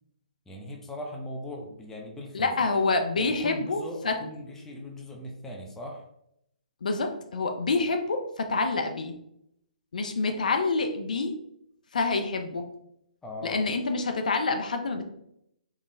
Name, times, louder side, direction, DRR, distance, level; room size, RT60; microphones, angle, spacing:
voice 1, 0.5-2.7 3.2-6.0 13.2-13.6, left 1 dB, 10° left, -1 dB, 0.5 m, -39 dB
voice 2, 2.3-4.1 6.8-9.1 9.9-11.3 11.9-12.6 13.4-15.1, left 3 dB, 70° left, 5 dB, 0.4 m, -27 dB
3.8 x 2.0 x 2.5 m, 0.76 s
figure-of-eight pair, 130°, 4 cm